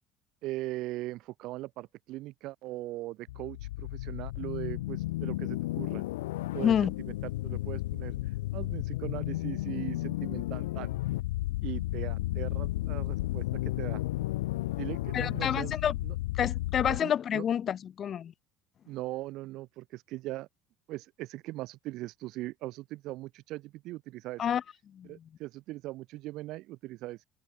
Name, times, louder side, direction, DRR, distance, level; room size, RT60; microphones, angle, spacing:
voice 1, 0.4-6.0 6.5-6.7 7.1-8.2 8.5-10.9 11.6-14.0 14.8-15.7 16.0-16.1 16.8-17.4 18.9-20.5 20.9-24.5 25.0-27.2, right 18 dB, 50° right, 0.9 m, -40 dB
sound 1, 3.3-17.0, left 17 dB, 65° left, 1.0 m, -33 dB
voice 2, 6.6-6.9 15.1-16.0 16.4-18.3 24.4-24.6 24.9-25.1, left 9 dB, 35° left, 0.4 m, -28 dB
figure-of-eight pair, 65°, 0 cm